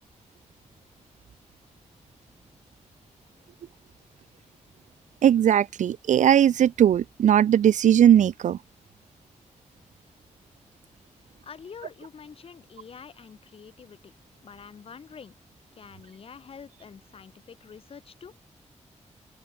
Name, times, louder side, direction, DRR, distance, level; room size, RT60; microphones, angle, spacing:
voice 1, 5.2-8.6, right 10 dB, 90° right, 0.6 m, -19 dB
voice 2, 11.4-14.1 14.4-15.3 15.8-18.3, left 6 dB, 50° left, 4.8 m, -46 dB
open air
wide cardioid pair, 180°, 12 cm